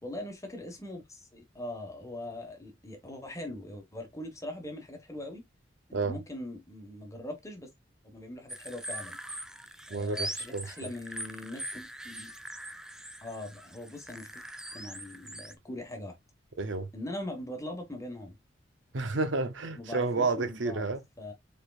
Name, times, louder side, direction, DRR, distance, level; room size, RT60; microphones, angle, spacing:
voice 1, 0.0-5.4 5.9-7.7 8.0-9.2 9.9-12.3 13.2-14.4 14.7-16.2 16.9-18.3 19.8-20.9 21.2-21.3, left 1 dB, 15° left, 1.4 m, -41 dB
sound 1, 8.5-15.5, right 1 dB, 5° right, 0.5 m, -42 dB
voice 2, 9.9-10.7 16.6-16.9 18.9-21.0, right 3 dB, 70° right, 0.8 m, -30 dB
4.9 x 4.5 x 2.4 m
head